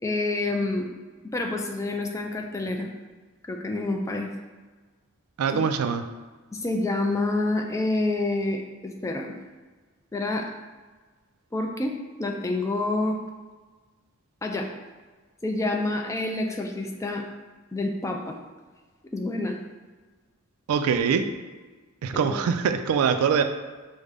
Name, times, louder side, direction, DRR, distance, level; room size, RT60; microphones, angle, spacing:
voice 1, 0.0-0.9 1.3-2.9 3.5-4.3 5.5-5.6 6.5-9.3 10.1-10.5 11.5-11.9 12.2-13.2 14.4-14.7 15.4-17.2 17.7-18.4 19.1-19.6, left 2 dB, 15° left, 2 dB, 0.3 m, -27 dB
voice 2, 5.4-6.0 20.7-21.3 22.0-23.4, right 6 dB, 90° right, 8 dB, 0.3 m, -23 dB
5.0 x 2.1 x 3.3 m, 1.4 s
head